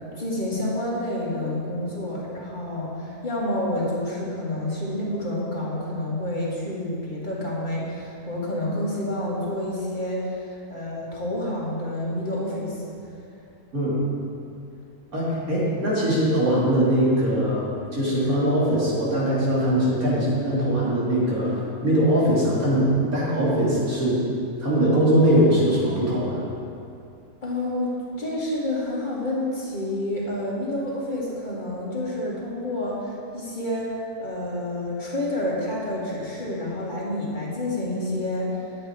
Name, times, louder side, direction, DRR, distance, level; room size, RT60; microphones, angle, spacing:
voice 1, 0.2-12.8 27.4-27.9 28.2-38.6, left 1 dB, 30° left, -5 dB, 2.1 m, -29 dB
voice 2, 15.1-24.2 24.6-26.4, right 1 dB, 75° right, -8 dB, 3.3 m, -21 dB
10.5 x 8.0 x 4.7 m, 2.5 s
omnidirectional pair, 1.5 m